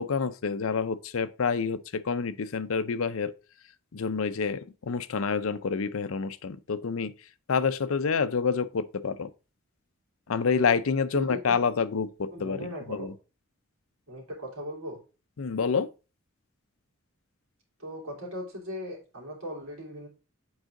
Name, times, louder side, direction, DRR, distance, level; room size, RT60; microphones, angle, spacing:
voice 1, 0.0-3.3 3.9-7.1 7.5-9.3 10.3-13.1 15.4-15.9, left 5 dB, 75° left, 0.5 m, -28 dB
voice 2, 11.1-11.6 12.3-13.1 14.1-15.0 17.8-20.1, equal, 85° right, 3.4 m, -38 dB
8.0 x 4.8 x 3.8 m
head